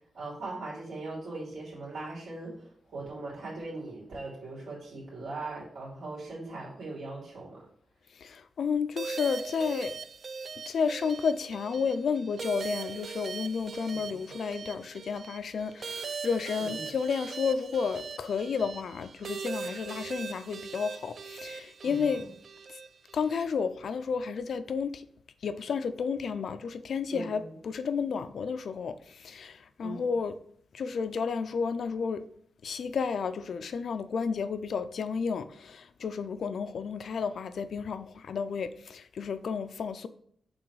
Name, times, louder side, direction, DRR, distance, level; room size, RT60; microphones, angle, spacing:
voice 1, 0.1-7.6 13.9-14.4 16.6-16.9 21.8-22.3 27.1-27.6 29.8-30.0, right 2 dB, 70° right, 2.8 m, -40 dB
voice 2, 8.2-10.0 10.7-22.2 23.1-25.0 25.4-30.3 30.7-32.2 32.6-40.1, left 5 dB, 60° left, 0.4 m, -32 dB
sound 1, 9.0-23.4, right 5 dB, 50° right, 0.3 m, -40 dB
6.1 x 3.9 x 4.7 m
wide cardioid pair, 155°, 0 cm